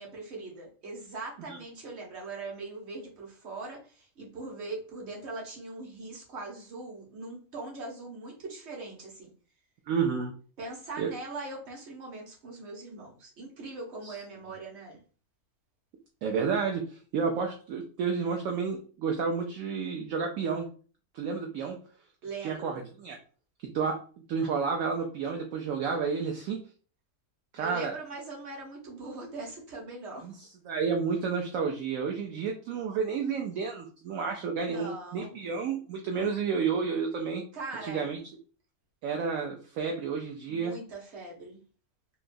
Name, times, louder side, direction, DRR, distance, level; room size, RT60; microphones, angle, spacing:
voice 1, 0.0-9.3 10.6-15.0 22.2-22.8 27.6-30.4 34.6-35.5 37.5-38.1 40.5-41.6, right 3 dB, 50° right, 1.2 m, -41 dB
voice 2, 9.9-10.3 11.0-11.1 14.0-14.1 16.2-20.7 21.1-21.8 22.4-23.2 23.7-26.6 27.5-27.9 30.2-30.3 30.7-37.4 37.8-38.2 39.0-40.7, right 5 dB, 70° right, 0.9 m, -31 dB
3.7 x 2.3 x 2.6 m
omnidirectional pair, 1.5 m